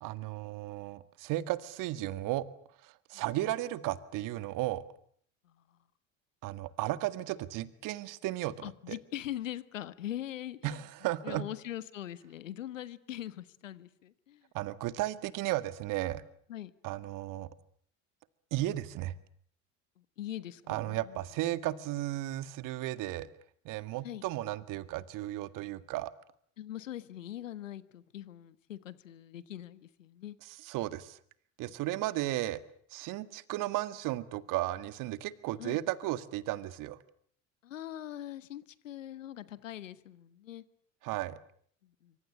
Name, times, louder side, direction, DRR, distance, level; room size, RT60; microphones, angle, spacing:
voice 1, 0.0-2.5 2.8-4.8 6.4-9.0 10.6-11.4 14.5-16.2 16.8-17.5 18.5-19.1 20.7-23.3 23.7-26.1 30.6-31.2 31.6-32.6 32.9-37.0 41.0-41.4, right 15 dB, 55° right, 14 dB, 2.0 m, -34 dB
voice 2, 5.4-5.8 8.6-10.8 11.2-14.5 16.5-16.7 20.0-21.2 24.0-24.2 26.6-30.4 35.6-35.8 37.6-40.6 41.8-42.1, left 12 dB, 80° left, 16 dB, 1.5 m, -42 dB
26.5 x 25.0 x 8.7 m, 0.62 s
hypercardioid pair, 70°, 38 cm